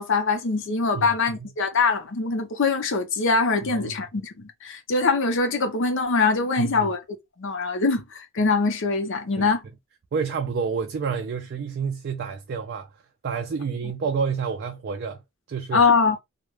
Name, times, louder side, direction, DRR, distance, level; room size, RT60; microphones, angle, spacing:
voice 1, 0.0-7.0 7.4-9.6 15.7-16.2, left 4 dB, 60° left, 0.7 m, -23 dB
voice 2, 3.7-4.0 6.6-6.9 9.4-9.5 10.1-12.9 13.2-15.2 15.5-15.9, right 5 dB, 50° right, 0.3 m, -29 dB
2.3 x 2.1 x 3.0 m
head